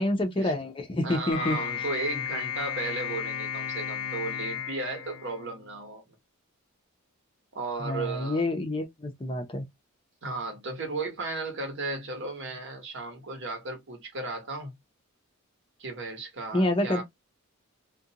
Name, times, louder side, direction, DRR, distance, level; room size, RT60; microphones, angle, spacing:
voice 1, 0.0-1.6 7.8-9.6 16.5-17.0, left 1 dB, 25° left, 0.5 m, -28 dB
voice 2, 1.0-6.1 7.5-8.4 10.2-14.7 15.8-17.0, right 3 dB, 55° right, 1.1 m, -35 dB
sound 1, 1.3-5.8, left 9 dB, 85° left, 0.4 m, -34 dB
2.5 x 2.2 x 2.7 m
head